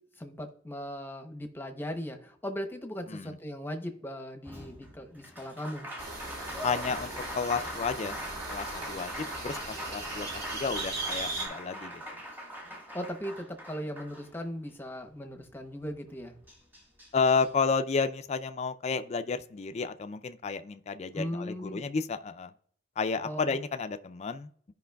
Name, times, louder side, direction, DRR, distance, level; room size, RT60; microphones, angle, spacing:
voice 1, 0.2-5.9 12.9-16.4 21.1-21.8 23.2-23.6, equal, 10° left, 5 dB, 0.8 m, -38 dB
Applause, 4.4-14.7 16.1-16.2 16.5-17.5, equal, 10° right, 1.4 m, -41 dB
sound 1, 6.0-11.5, right 2 dB, 55° right, 2.3 m, -38 dB
voice 2, 6.6-8.2 8.5-12.0 17.1-22.5 23.0-24.7, left 5 dB, 35° left, 9 dB, 0.4 m, -31 dB
14.0 x 5.2 x 2.3 m, 0.62 s
head